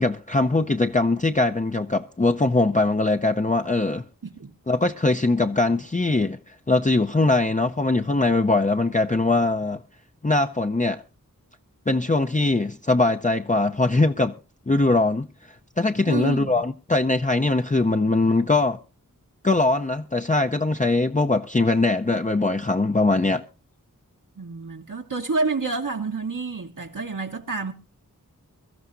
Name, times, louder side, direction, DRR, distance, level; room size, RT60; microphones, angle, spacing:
voice 1, 0.0-4.0 4.7-9.8 10.2-11.0 11.9-14.3 14.7-15.3 15.8-18.8 19.4-23.4, left 2 dB, 25° left, 0.6 m, -21 dB
voice 2, 4.2-4.5 16.0-16.6 24.4-27.7, right 3 dB, 70° right, 1.3 m, -29 dB
23.0 x 13.5 x 2.6 m
wide cardioid pair, 55°, 33 cm